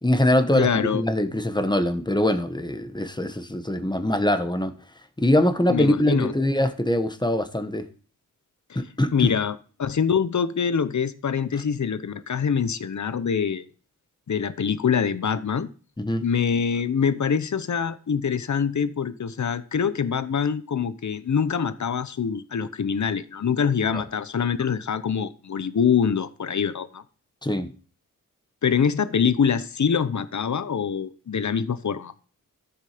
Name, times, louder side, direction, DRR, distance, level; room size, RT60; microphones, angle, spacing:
voice 1, 0.0-4.7 5.2-7.9 8.7-9.3 16.0-16.3 23.9-24.0 27.4-27.7, left 1 dB, 15° left, 1.3 m, -23 dB
voice 2, 0.5-1.0 5.7-6.3 9.1-13.6 14.3-15.7 16.2-27.0 28.6-32.1, left 7 dB, 60° left, 0.9 m, -24 dB
14.0 x 7.3 x 5.1 m
wide cardioid pair, 85°, 33 cm